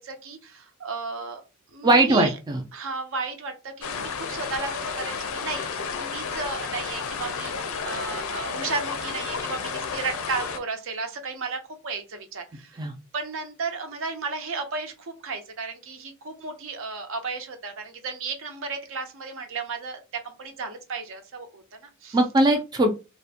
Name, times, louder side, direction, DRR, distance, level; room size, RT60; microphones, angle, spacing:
voice 1, 0.0-1.4 1.7-2.3 2.7-22.2, right 4 dB, 65° right, 6 dB, 0.6 m, -34 dB
voice 2, 1.8-2.6 12.8-12.9 22.1-22.9, right 2 dB, 20° right, 3 dB, 0.3 m, -20 dB
sound 1, 3.8-10.6, left 5 dB, 65° left, 0.4 m, -32 dB
2.4 x 2.1 x 2.7 m, 0.28 s
head